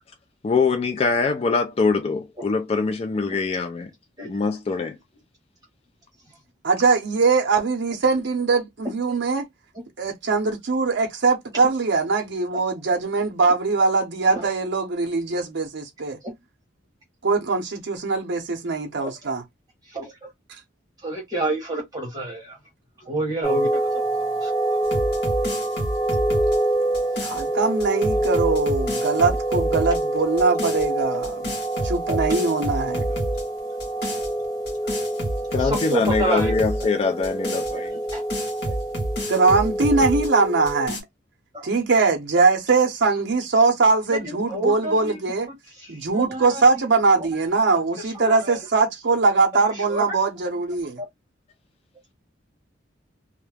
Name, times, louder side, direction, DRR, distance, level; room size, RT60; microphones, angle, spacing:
voice 1, 0.4-3.9 4.2-5.0 35.5-38.0, left 4 dB, 30° left, 0.3 m, -23 dB
voice 2, 6.6-9.5 10.0-16.2 17.2-19.4 27.2-31.6 31.8-33.0 39.3-41.0 41.6-45.5 45.9-51.0, right 4 dB, 65° right, 0.6 m, -21 dB
voice 3, 21.0-22.6 23.0-24.0 24.4-24.5 29.3-29.4 32.1-32.2 35.6-36.5 36.8-36.9 37.7-37.8 38.1-38.2 41.5-41.7 44.1-45.2 45.8-46.6 47.2-47.3 48.1-48.6 49.5-49.6 49.9-50.2, right 1 dB, 20° right, 0.9 m, -29 dB
sound 1, 23.4-40.9, right 1 dB, 15° left, 1.1 m, -26 dB
sound 2, 24.8-27.4 27.8-30.0 30.4-30.9 31.2-33.4 33.8-34.3 34.7-36.9 37.2-40.3 40.7-41.0, equal, 60° left, 1.0 m, -29 dB
2.3 x 2.0 x 3.2 m
head